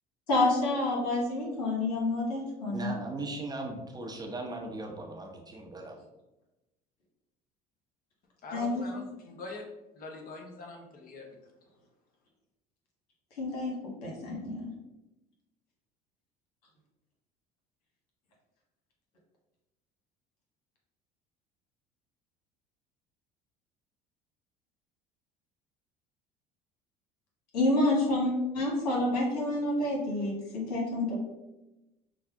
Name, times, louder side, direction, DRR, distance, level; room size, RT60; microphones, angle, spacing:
voice 1, 0.3-2.9 8.5-8.9 13.4-14.7 27.5-31.2, left 2 dB, 85° left, -2 dB, 1.4 m, -28 dB
voice 2, 2.7-6.0, right 2 dB, 20° right, 0 dB, 0.9 m, -38 dB
voice 3, 8.4-9.6 9.9-11.3, left 3 dB, 45° left, 2 dB, 1.2 m, -43 dB
5.8 x 2.3 x 3.6 m, 0.98 s
hypercardioid pair, 75°, 20 cm